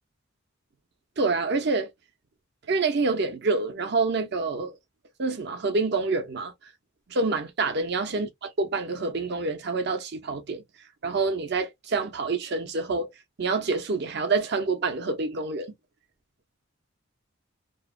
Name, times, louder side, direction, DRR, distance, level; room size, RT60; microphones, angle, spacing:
voice 1, 1.2-1.9 2.7-4.7 5.2-6.5 7.1-10.6 11.0-13.1 13.4-15.7, right 3 dB, 55° right, 0.6 m, -27 dB
2.9 x 2.1 x 2.2 m
head